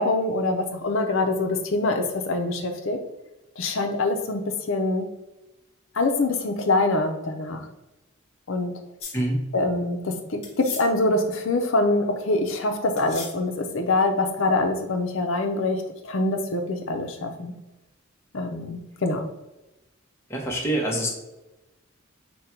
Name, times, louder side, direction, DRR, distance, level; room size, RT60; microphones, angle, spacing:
voice 1, 0.0-3.0 3.6-4.4 4.7-5.1 6.0-7.6 8.5-8.7 9.5-17.5 18.3-19.2, left 2 dB, 70° left, 4 dB, 0.6 m, -24 dB
sound 1, 9.0-9.2 10.4-10.9 13.0-13.4, left 5 dB, 30° left, 1.0 m, -35 dB
voice 2, 20.3-21.1, right 1 dB, 10° left, -1 dB, 0.8 m, -25 dB
5.3 x 2.2 x 4.3 m, 1.0 s
head